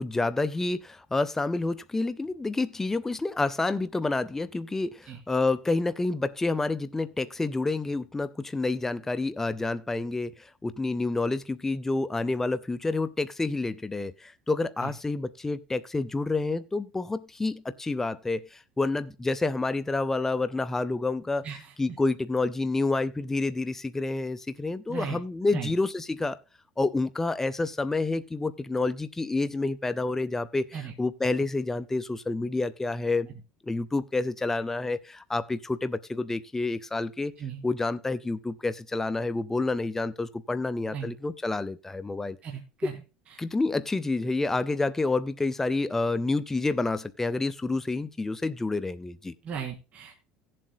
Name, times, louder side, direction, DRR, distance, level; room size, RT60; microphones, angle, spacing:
voice 1, 0.0-21.4 21.8-26.4 26.8-33.3 33.6-37.3 37.6-42.4 42.8-42.9 43.4-49.3, left 3 dB, 10° left, 0.6 m, -29 dB
voice 2, 24.9-25.2 25.5-25.7 30.7-30.9 37.4-37.7 40.9-41.1 42.4-42.9 49.4-50.1, right 7 dB, 40° right, 2.4 m, -36 dB
17.5 x 7.6 x 2.3 m
supercardioid pair, 110°, 3 cm